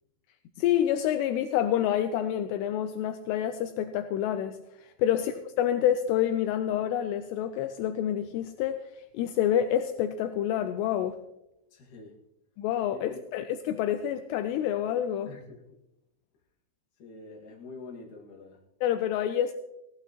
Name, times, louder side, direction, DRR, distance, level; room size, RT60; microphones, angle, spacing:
voice 1, 0.6-8.8 9.1-11.2 12.6-15.3 18.8-19.5, left 10 dB, 85° left, 2.5 m, -28 dB
voice 2, 11.7-12.2 12.9-13.3 15.2-15.7 17.0-18.7, left 3 dB, 55° left, 2.9 m, -46 dB
17.0 x 15.5 x 2.9 m
omnidirectional pair, 5.3 m